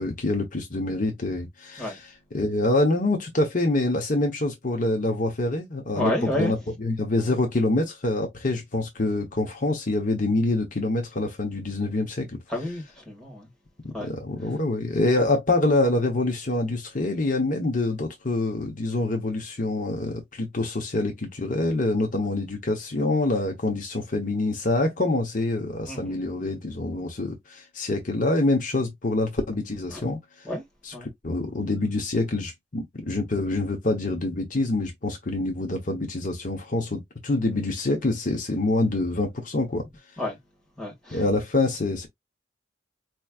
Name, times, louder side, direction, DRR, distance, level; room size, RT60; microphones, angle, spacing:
voice 1, 0.0-2.0 2.3-12.4 13.8-30.2 30.8-30.9 31.2-39.8 41.1-42.1, left 2 dB, 50° left, 1.0 m, -26 dB
voice 2, 6.0-6.5 12.5-13.5 13.9-14.1 25.9-26.2 29.9-30.0 30.4-30.6 30.9-31.1 40.2-40.4 40.8-41.2, left 1 dB, 5° left, 1.9 m, -30 dB
4.4 x 3.1 x 2.4 m
head